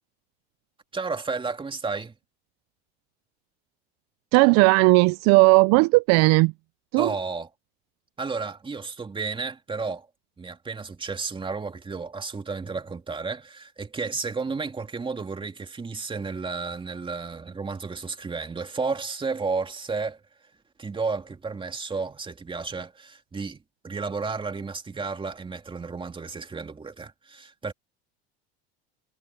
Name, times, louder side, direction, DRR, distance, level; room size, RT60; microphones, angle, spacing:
voice 1, 0.9-2.1 7.0-7.5 8.2-10.1 10.4-20.2 20.8-27.7, right 4 dB, 15° right, 2.8 m, -32 dB
voice 2, 4.3-6.5 6.9-7.1, right 26 dB, 60° right, 0.5 m, -17 dB
supercardioid pair, 120°, 30 cm